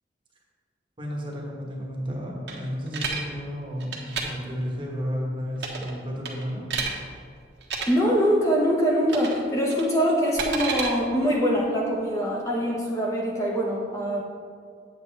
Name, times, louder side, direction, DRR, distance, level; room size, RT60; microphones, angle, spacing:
voice 1, 1.0-6.7, equal, 25° right, -2 dB, 1.2 m, -32 dB
sound 1, 2.5-3.2 3.8-4.2 5.6-5.9 6.2-6.9 7.6-7.9 9.1-9.4 9.7-10.9, right 5 dB, 70° right, 1.2 m, -30 dB
voice 2, 7.9-14.2, equal, 15° left, -3 dB, 1.0 m, -23 dB
8.9 x 7.8 x 3.3 m, 2.2 s
head